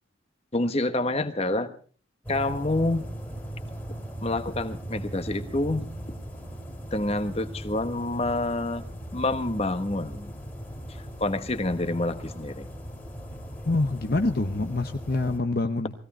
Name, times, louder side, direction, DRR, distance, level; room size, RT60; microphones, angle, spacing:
voice 1, 0.5-1.7 2.3-3.0 4.2-5.9 6.9-8.9 9.1-10.3 11.2-12.7, left 2 dB, 30° left, 9 dB, 1.2 m, -27 dB
sound 1, 2.2-15.4, equal, 10° left, 2.7 m, -38 dB
voice 2, 13.7-15.9, left 2 dB, 50° left, 6 dB, 0.8 m, -26 dB
20.0 x 16.5 x 4.3 m, 0.41 s
head